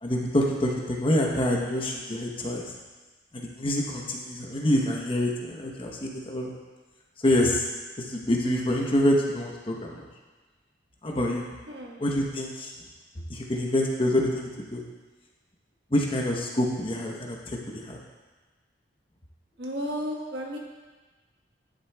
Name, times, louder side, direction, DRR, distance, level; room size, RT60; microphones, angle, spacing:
voice 1, 0.0-2.6 3.3-6.5 7.2-7.6 8.1-10.0 11.0-11.4 12.0-12.7 13.3-14.8 15.9-17.4 17.7-18.0, left 1 dB, 30° left, -1 dB, 0.9 m, -26 dB
voice 2, 11.7-12.0 19.6-20.6, equal, 70° right, -1 dB, 1.3 m, -33 dB
10.0 x 8.1 x 2.3 m, 1.3 s
head